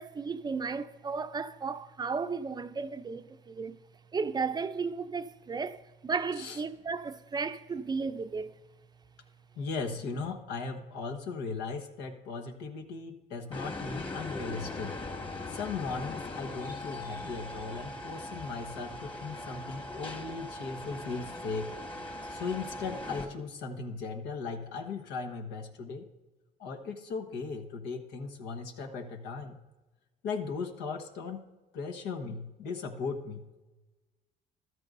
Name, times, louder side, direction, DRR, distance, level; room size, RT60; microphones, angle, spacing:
voice 1, 0.0-3.8 4.1-8.6, right 5 dB, 25° right, 0.5 m, -34 dB
voice 2, 9.6-14.9 15.5-21.7 22.3-26.1 26.6-29.6 30.2-31.4 31.7-33.4, left 4 dB, 85° left, 1.2 m, -37 dB
sound 1, 13.5-23.2, left 2 dB, 30° left, 1.7 m, -40 dB
14.0 x 12.5 x 2.6 m
cardioid pair, 110°, 17 cm